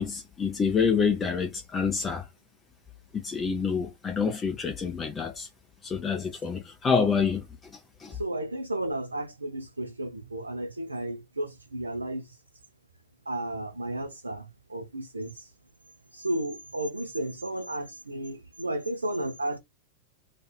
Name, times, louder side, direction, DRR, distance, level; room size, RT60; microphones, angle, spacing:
voice 1, 0.0-2.3 3.1-5.5 5.8-8.2, left 6 dB, 20° left, 0.5 m, -27 dB
voice 2, 8.2-12.2 13.3-15.3 16.1-19.6, right 1 dB, 80° right, 0.7 m, -33 dB
2.5 x 2.5 x 2.3 m
figure-of-eight pair, 90°, 0 cm